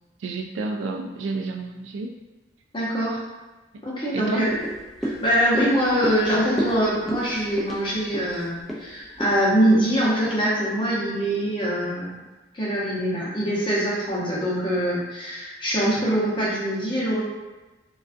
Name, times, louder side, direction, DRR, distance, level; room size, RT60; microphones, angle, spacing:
voice 1, 0.2-2.1 3.7-3.8 4.1-4.4, right 3 dB, 85° right, 2 dB, 0.3 m, -30 dB
voice 2, 2.7-3.2 3.8-4.5 5.0-12.2 12.5-17.2, equal, 25° left, -7 dB, 0.7 m, -23 dB
sound 1, 4.5-11.0 11.3-11.4, equal, ahead, 0.3 m, -33 dB
2.5 x 2.3 x 2.4 m, 1.2 s
head